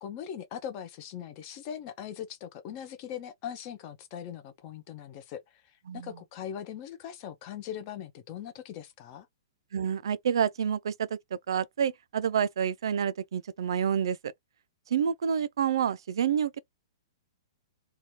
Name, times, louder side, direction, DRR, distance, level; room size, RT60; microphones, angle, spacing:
voice 1, 0.0-9.3, left 9 dB, 25° left, 0.5 m, -40 dB
voice 2, 9.7-11.1 11.5-14.3 14.9-16.6, right 8 dB, 65° right, 0.4 m, -28 dB
2.8 x 2.3 x 3.0 m
hypercardioid pair, 175°, 3 cm